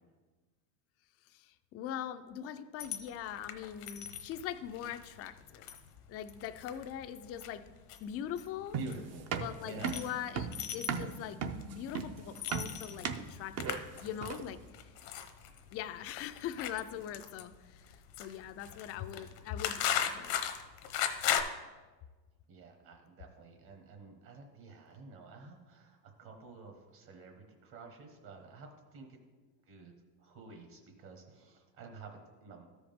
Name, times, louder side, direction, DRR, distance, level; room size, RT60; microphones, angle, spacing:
voice 1, 1.3-5.7 6.1-7.6 8.0-8.8 9.4-11.4 11.6-14.6 15.7-20.3, left 10 dB, 35° left, 10 dB, 0.4 m, -42 dB
sound 1, 2.8-21.4, left 10 dB, 80° left, 1.0 m, -39 dB
sound 2, 8.7-14.6, right 6 dB, 30° right, 0.6 m, -37 dB
voice 2, 8.7-9.3 9.6-10.0 14.2-14.4 22.5-29.2 29.7-29.9 30.2-32.7, right 4 dB, 50° right, 3 dB, 1.5 m, -50 dB
13.0 x 5.0 x 3.6 m, 1.3 s
supercardioid pair, 115°, 49 cm